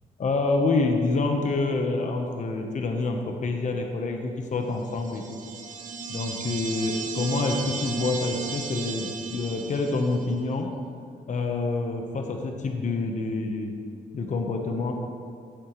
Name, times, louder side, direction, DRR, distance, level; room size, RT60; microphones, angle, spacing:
voice 1, 0.2-5.4 6.1-10.7 11.3-13.7 14.1-14.9, left 3 dB, 55° left, 3 dB, 1.2 m, -27 dB
sound 1, 4.9-10.3, right 5 dB, 60° right, 1.0 m, -35 dB
15.0 x 8.1 x 3.2 m, 2.2 s
cardioid pair, 70°, 15 cm